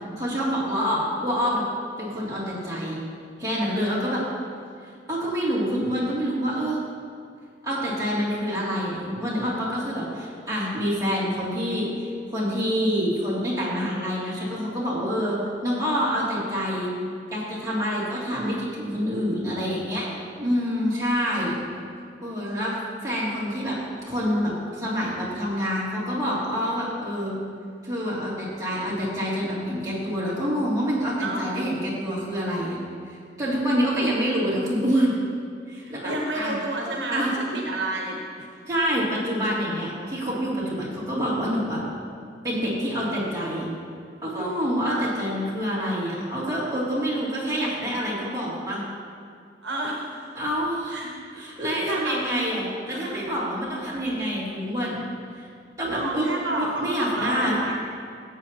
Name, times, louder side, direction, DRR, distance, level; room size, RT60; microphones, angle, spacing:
voice 1, 0.2-1.6 2.0-3.0 3.4-4.2 5.1-6.8 7.6-11.9 12.3-15.4 15.6-16.9 17.3-20.1 20.4-21.6 22.2-22.8 23.0-23.8 24.0-27.3 27.8-32.8 33.4-35.1 35.7-36.5 37.1-37.3 38.7-41.8 42.4-43.7 44.2-48.8 50.4-51.0 51.3-55.0 55.8-56.3 56.6-57.6, equal, 20° right, -8 dB, 2.7 m, -26 dB
voice 2, 0.7-1.0 20.9-21.7 31.2-31.5 35.8-38.5 44.9-45.2 49.6-50.3 50.9-51.1 51.5-52.3 52.9-53.3 55.9-57.7, right 1 dB, 75° right, -1 dB, 1.1 m, -31 dB
15.0 x 7.5 x 2.9 m, 2.2 s
head